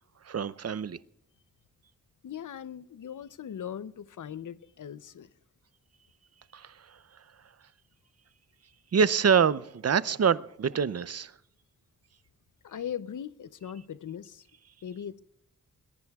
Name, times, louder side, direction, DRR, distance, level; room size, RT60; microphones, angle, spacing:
voice 1, 0.2-1.0 6.5-7.0 8.9-11.3, right 6 dB, 50° right, 0.6 m, -26 dB
voice 2, 2.2-5.3 12.6-14.5 14.8-15.2, left 9 dB, 70° left, 0.6 m, -39 dB
21.5 x 21.0 x 2.4 m
cardioid pair, 55°, 32 cm